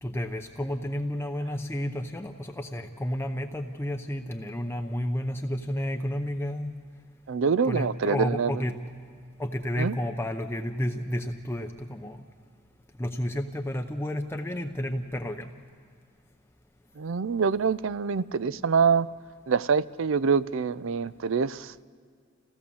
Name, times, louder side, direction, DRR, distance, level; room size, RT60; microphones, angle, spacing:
voice 1, 0.0-6.7 7.6-8.8 9.4-12.2 13.0-15.5, equal, 10° left, 4 dB, 0.7 m, -31 dB
voice 2, 7.3-8.5 9.8-10.0 17.0-19.1 19.5-21.7, right 5 dB, 65° right, 17 dB, 0.5 m, -25 dB
28.0 x 16.5 x 7.0 m, 2.2 s
head